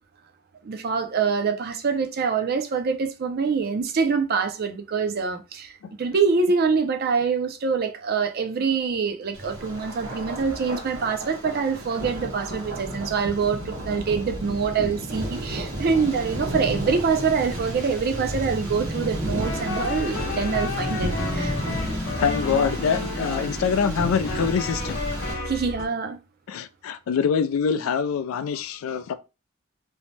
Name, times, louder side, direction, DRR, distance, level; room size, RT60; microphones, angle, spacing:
voice 1, 0.6-21.5 25.5-26.2, right 5 dB, 50° right, 0.4 m, -25 dB
Thunder, 9.3-25.3, right 1 dB, 85° right, 1.1 m, -33 dB
sound 1, 17.3-25.5, equal, ahead, 0.5 m, -35 dB
sound 2, 19.4-25.9, left 3 dB, 70° left, 0.7 m, -32 dB
voice 2, 22.2-25.0 26.5-29.1, left 6 dB, 90° left, 0.3 m, -25 dB
2.7 x 2.0 x 3.1 m
head